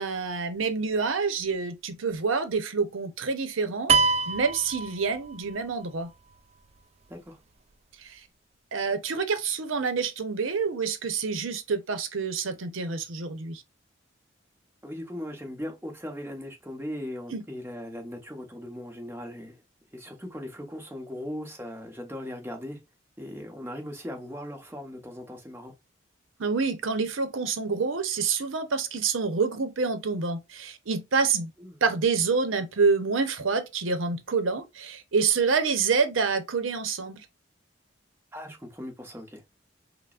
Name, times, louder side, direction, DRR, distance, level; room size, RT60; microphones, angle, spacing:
voice 1, 0.0-6.1 8.0-8.2 8.7-13.6 17.3-17.4 26.4-31.5 31.8-37.3, right 5 dB, 90° right, 0.7 m, -27 dB
sound 1, 3.9-5.6, right 4 dB, 30° right, 0.3 m, -24 dB
voice 2, 7.1-7.4 14.8-19.6 19.9-22.8 23.2-25.7 31.6-31.8 38.3-39.4, equal, 10° right, 1.0 m, -38 dB
5.5 x 2.1 x 2.4 m
head